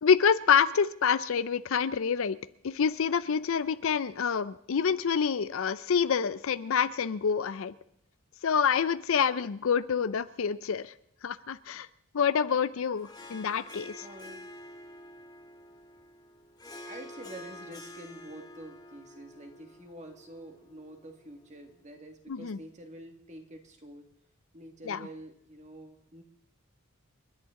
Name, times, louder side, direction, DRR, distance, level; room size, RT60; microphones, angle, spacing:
voice 1, 0.0-2.4 2.6-7.7 8.4-10.9 11.2-11.9 12.1-14.0 22.3-22.6 24.9-25.1, left 7 dB, 65° left, 15 dB, 0.5 m, -27 dB
Harp, 12.9-21.6, left 1 dB, 20° left, 1.8 m, -48 dB
voice 2, 14.0-14.5 16.8-24.1 24.5-26.2, right 1 dB, 30° right, 4 dB, 1.9 m, -47 dB
29.0 x 10.5 x 3.7 m, 0.73 s
head